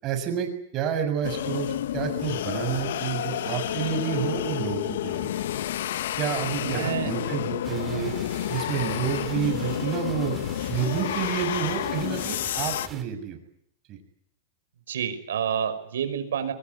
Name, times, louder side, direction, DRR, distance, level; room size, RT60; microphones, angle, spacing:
voice 1, 0.0-5.3 6.2-8.1 8.5-10.3 10.7-13.4 13.9-14.0, right 8 dB, 30° right, 6 dB, 6.6 m, -29 dB
sound 1, 1.2-12.9, left 12 dB, 75° left, 1.0 m, -30 dB
voice 2, 6.6-7.1 14.9-16.5, right 8 dB, 90° right, 9 dB, 5.3 m, -28 dB
sound 2, 7.6-13.0, right 6 dB, 15° right, 3.3 m, -43 dB
23.5 x 19.5 x 9.6 m, 0.69 s
supercardioid pair, 155°, 0 cm